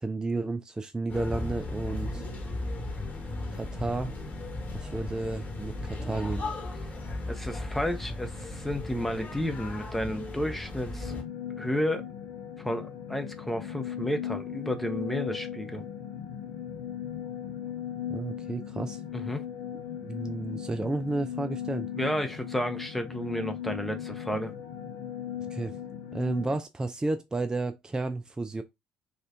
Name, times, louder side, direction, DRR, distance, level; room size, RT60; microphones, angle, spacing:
voice 1, 0.0-2.2 3.5-4.1 4.7-6.4 18.1-19.0 20.0-21.9 25.5-25.8 26.1-28.6, right 2 dB, 15° right, 0.4 m, -32 dB
sound 1, 1.1-11.2, left 2 dB, 35° left, 1.2 m, -36 dB
voice 2, 7.3-11.1 11.6-12.0 12.6-15.8 19.1-19.4 22.0-24.5, equal, 5° left, 0.8 m, -32 dB
sound 2, 11.0-26.6, left 9 dB, 60° left, 0.6 m, -38 dB
4.0 x 2.4 x 2.7 m
figure-of-eight pair, 50°, 5 cm